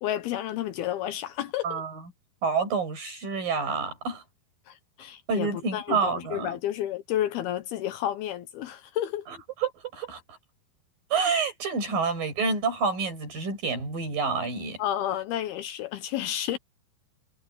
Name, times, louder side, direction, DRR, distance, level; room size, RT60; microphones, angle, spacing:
voice 1, 0.0-1.8 4.7-9.3 14.8-16.6, left 12 dB, 75° left, 2.8 m, -31 dB
voice 2, 1.6-2.0 2.4-4.2 5.3-6.6 9.3-10.4 11.1-14.8, right 4 dB, 55° right, 8.4 m, -28 dB
omnidirectional pair, 4.7 m